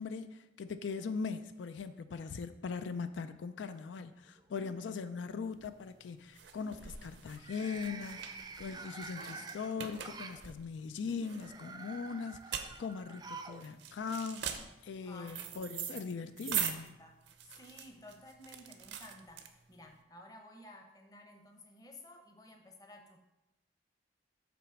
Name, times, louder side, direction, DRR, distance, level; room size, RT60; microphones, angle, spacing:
voice 1, 0.0-16.9, left 5 dB, 90° left, 11 dB, 0.4 m, -40 dB
sound 1, 3.8-4.4 4.8-5.2 7.3-10.4 11.2-13.7 13.9-14.0 15.1-15.2, right 4 dB, 20° right, 0.3 m, -48 dB
sound 2, 5.5-19.9, right 8 dB, 85° right, 0.6 m, -42 dB
voice 2, 15.0-16.2 16.6-17.1 17.4-23.2, left 1 dB, 20° left, 3 dB, 0.8 m, -54 dB
6.0 x 4.0 x 5.9 m, 0.94 s
head